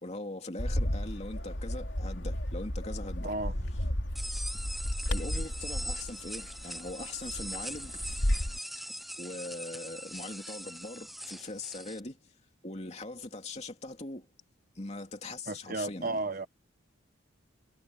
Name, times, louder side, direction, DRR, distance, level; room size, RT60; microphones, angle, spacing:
voice 1, 0.0-3.3 5.1-7.9 9.2-12.2 12.6-14.3 14.8-16.2, left 2 dB, 35° left, 2.9 m, -41 dB
Bird, 0.6-8.6, equal, 70° left, 2.8 m, -33 dB
sound 1, 4.1-12.0, equal, ahead, 0.8 m, -41 dB
voice 2, 15.5-16.5, right 3 dB, 45° right, 1.2 m, -33 dB
head